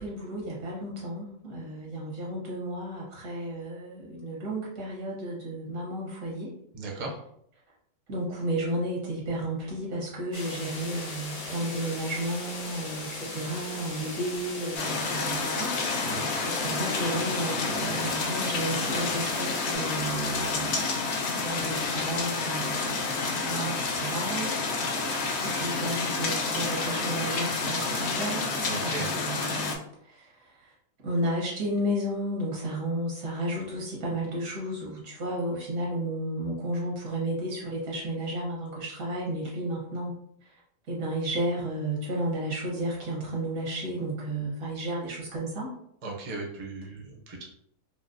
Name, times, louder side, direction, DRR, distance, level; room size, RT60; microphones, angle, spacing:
voice 1, 0.0-6.5 8.1-30.7 31.0-40.1 40.4-40.5 40.9-45.7, right 1 dB, 75° right, -3 dB, 1.5 m, -33 dB
voice 2, 6.7-7.1 16.0-16.3 28.7-29.1 46.0-47.4, right 3 dB, 40° right, -1 dB, 0.5 m, -37 dB
sound 1, 10.3-19.8, left 2 dB, 85° left, 0.3 m, -38 dB
sound 2, 14.7-29.7, left 4 dB, 60° left, 0.7 m, -29 dB
4.4 x 2.0 x 2.5 m, 0.69 s
omnidirectional pair, 1.5 m